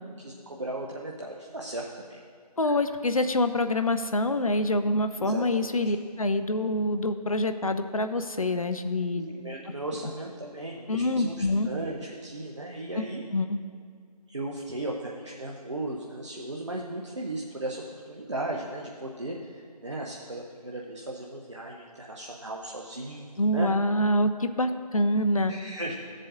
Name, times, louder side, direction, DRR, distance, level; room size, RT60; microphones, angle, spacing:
voice 1, 0.2-2.2 2.6-2.8 5.2-5.9 9.1-13.2 14.3-23.7 25.5-26.0, right 1 dB, 45° right, -1 dB, 0.7 m, -36 dB
voice 2, 2.6-9.3 10.9-11.7 13.0-13.1 13.3-13.6 23.4-25.5, left 1 dB, 60° left, 9 dB, 0.5 m, -26 dB
13.0 x 7.5 x 2.5 m, 2.1 s
figure-of-eight pair, 160°, 21 cm